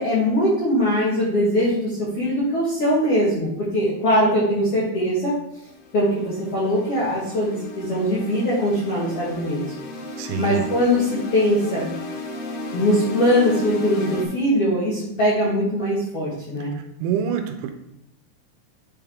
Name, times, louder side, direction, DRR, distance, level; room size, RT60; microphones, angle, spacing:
voice 1, 0.0-5.3 5.9-9.6 10.4-11.9 12.7-16.7, equal, 60° left, -8 dB, 1.6 m, -21 dB
sound 1, 5.5-14.3, left 2 dB, 85° left, 1.8 m, -34 dB
voice 2, 10.2-10.6 17.0-17.7, right 8 dB, 90° right, 6 dB, 2.7 m, -25 dB
9.5 x 3.5 x 3.5 m, 0.77 s
omnidirectional pair, 4.6 m